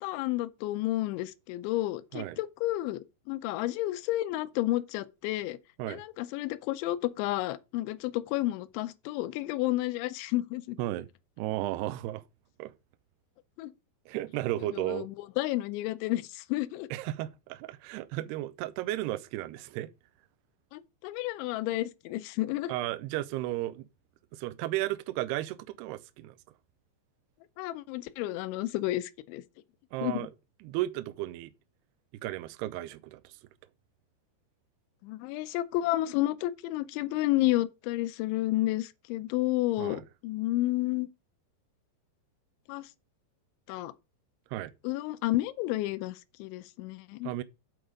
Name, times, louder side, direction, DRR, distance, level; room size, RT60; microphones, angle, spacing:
voice 1, 0.0-3.0 3.3-5.6 5.9-10.8 13.6-13.7 14.7-16.9 20.7-22.7 27.6-29.4 30.0-30.3 35.0-41.1 42.7-42.9 43.7-43.9 44.8-47.3, left 16 dB, 85° left, 3.0 m, -31 dB
voice 2, 11.4-12.2 12.6-12.7 14.1-15.1 16.9-19.9 22.7-23.9 24.3-26.4 29.9-30.3 30.6-31.5 32.2-33.4 39.8-40.0 44.5-44.7 47.2-47.4, right 15 dB, 80° right, 2.4 m, -34 dB
8.0 x 7.9 x 5.1 m
omnidirectional pair, 5.2 m